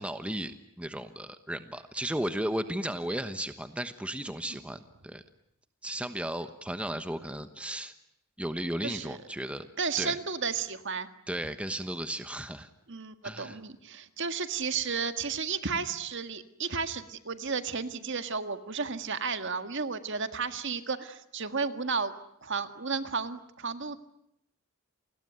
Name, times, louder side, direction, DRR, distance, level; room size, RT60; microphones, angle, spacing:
voice 1, 0.0-5.2 5.8-7.9 8.4-9.7 10.0-10.2 11.3-12.7 13.2-13.6, right 1 dB, 5° right, 9 dB, 1.1 m, -35 dB
voice 2, 8.8-9.2 9.8-11.1 12.9-22.1 22.4-24.0, right 5 dB, 55° right, 9 dB, 1.8 m, -33 dB
29.5 x 20.5 x 9.5 m, 0.76 s
head